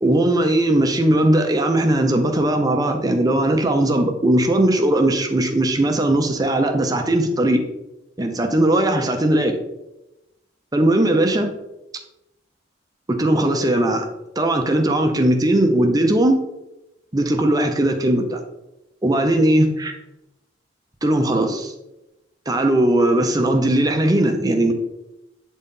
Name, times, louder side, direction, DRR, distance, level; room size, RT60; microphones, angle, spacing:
voice 1, 0.0-7.6 8.2-9.5 10.7-11.5 13.1-14.1 14.4-16.4 17.1-18.4 19.0-19.9 21.0-21.7 22.5-24.7, right 1 dB, 20° right, 4 dB, 0.6 m, -18 dB
8.2 x 4.1 x 3.7 m, 0.92 s
head